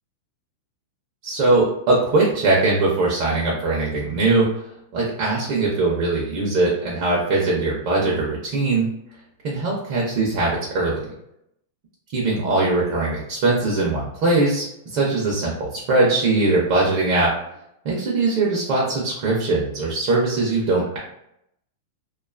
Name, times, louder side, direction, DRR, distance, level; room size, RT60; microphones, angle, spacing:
voice 1, 1.2-4.5 4.9-8.9 9.4-11.1 12.1-14.7 14.9-17.3 17.8-21.0, right 2 dB, 35° right, -4 dB, 0.5 m, -21 dB
2.4 x 2.3 x 2.4 m, 0.79 s
supercardioid pair, 175°, 0 cm